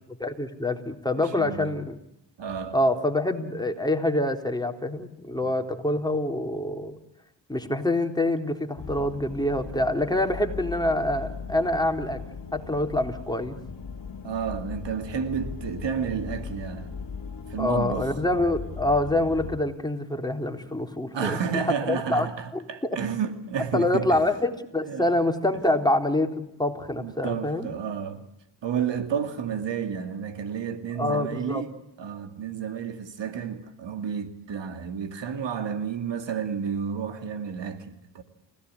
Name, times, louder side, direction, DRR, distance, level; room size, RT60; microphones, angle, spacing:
voice 1, 0.2-2.0 2.7-7.0 7.5-12.2 12.5-13.6 17.6-21.4 21.9-22.3 22.5-23.0 23.7-27.7 31.0-31.6, left 1 dB, 10° left, 3.8 m, -26 dB
voice 2, 1.2-1.8 2.4-2.8 5.4-5.5 14.2-17.0 17.5-18.1 21.1-24.2 24.8-25.1 27.0-28.3 28.6-31.7 32.0-38.2, right 7 dB, 75° right, 2.4 m, -31 dB
sound 1, 8.8-19.6, left 5 dB, 50° left, 2.3 m, -38 dB
29.5 x 17.0 x 9.7 m
cardioid pair, 60°, 43 cm